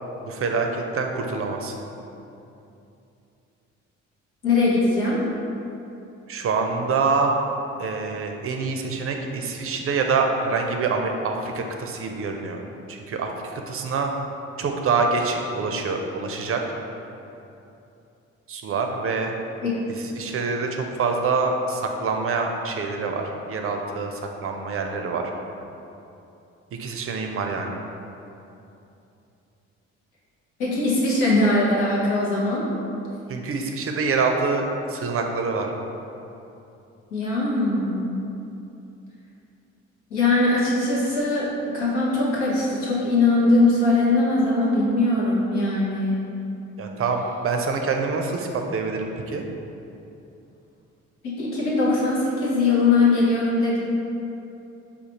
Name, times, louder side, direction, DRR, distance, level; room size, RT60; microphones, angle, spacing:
voice 1, 0.2-1.7 6.3-7.4 7.8-12.6 12.9-14.1 14.6-16.6 18.5-19.3 20.1-23.2 23.5-25.2 26.7-27.8 33.3-35.7 46.8-49.5, right 4 dB, 40° right, 3 dB, 0.5 m, -26 dB
voice 2, 4.4-5.2 19.6-19.7 30.6-32.6 37.1-38.1 40.1-46.2 51.2-53.8, left 2 dB, 90° left, -6 dB, 0.8 m, -21 dB
4.9 x 2.3 x 2.9 m, 2.8 s
hypercardioid pair, 50°, 34 cm